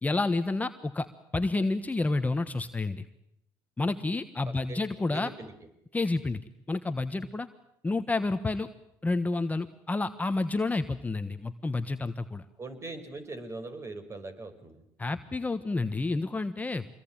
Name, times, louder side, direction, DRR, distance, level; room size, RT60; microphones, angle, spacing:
voice 1, 0.0-1.1 1.3-3.0 3.8-5.3 5.9-6.4 6.7-7.5 7.8-8.7 9.0-12.4 15.0-16.9, left 3 dB, 15° left, 9 dB, 1.4 m, -29 dB
voice 2, 4.5-4.8 5.1-5.5 12.6-14.8, right 2 dB, 30° right, 9 dB, 5.6 m, -41 dB
26.0 x 21.5 x 8.9 m, 0.77 s
supercardioid pair, 80°, 9 cm